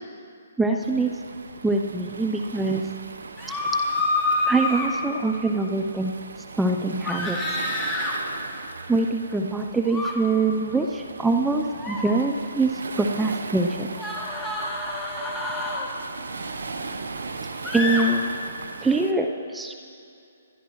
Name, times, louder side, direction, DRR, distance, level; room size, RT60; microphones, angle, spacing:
voice 1, 0.6-1.1 1.6-2.8 4.4-6.1 6.6-7.4 8.9-12.7 13.0-13.9 17.7-18.4 18.8-19.7, right 3 dB, 5° right, 4 dB, 0.7 m, -24 dB
Waves surf, 0.8-19.1, right 4 dB, 75° right, 1.0 m, -38 dB
sound 1, 3.4-4.9 7.1-8.1 9.9-10.1 11.7-12.0 14.0-15.9 17.6-18.0, left 2 dB, 10° left, 2.5 m, -27 dB
27.5 x 11.5 x 3.2 m, 2.5 s
hypercardioid pair, 140°, 0 cm